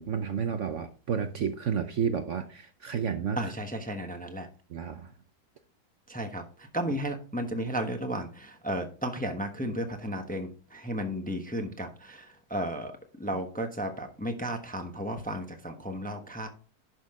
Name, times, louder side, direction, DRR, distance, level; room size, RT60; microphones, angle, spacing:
voice 1, 0.0-3.4 4.7-5.1, right 7 dB, 55° right, 8 dB, 1.0 m, -31 dB
voice 2, 3.4-4.5 6.1-16.5, right 1 dB, 5° left, 5 dB, 0.9 m, -34 dB
11.0 x 6.2 x 3.7 m, 0.37 s
omnidirectional pair, 1.7 m